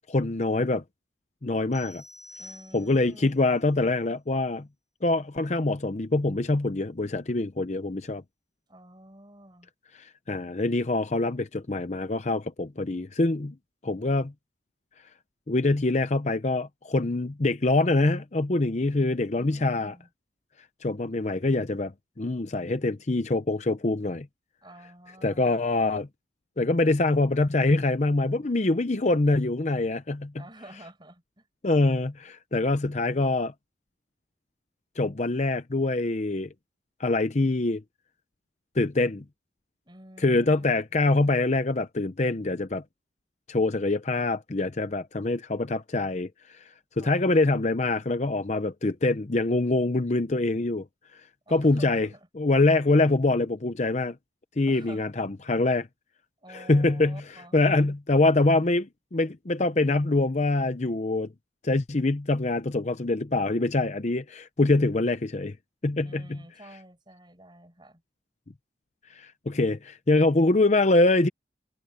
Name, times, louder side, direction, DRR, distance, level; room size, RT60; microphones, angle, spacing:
voice 1, 0.1-0.8 1.4-2.0 2.7-4.7 5.0-8.2 10.0-13.6 13.8-14.3 15.5-20.0 20.8-21.9 22.2-24.3 25.2-26.1 26.6-30.4 31.6-33.5 35.0-36.5 37.0-37.8 38.8-39.2 40.2-42.8 43.5-46.6 47.0-50.9 51.5-52.1 52.3-54.2 54.6-55.9 56.5-61.3 61.6-65.5 65.8-66.4 69.1-71.3, left 2 dB, 40° left, 0.7 m, -24 dB
sound 1, 1.7-3.2, left 1 dB, 20° left, 3.4 m, -48 dB
voice 2, 2.4-3.4 8.7-9.7 19.3-20.1 24.6-25.6 30.4-31.4 39.9-40.7 40.9-41.0 47.0-47.3 51.5-52.2 54.7-55.0 56.4-57.6 66.0-68.0, right 1 dB, 25° right, 6.8 m, -49 dB
head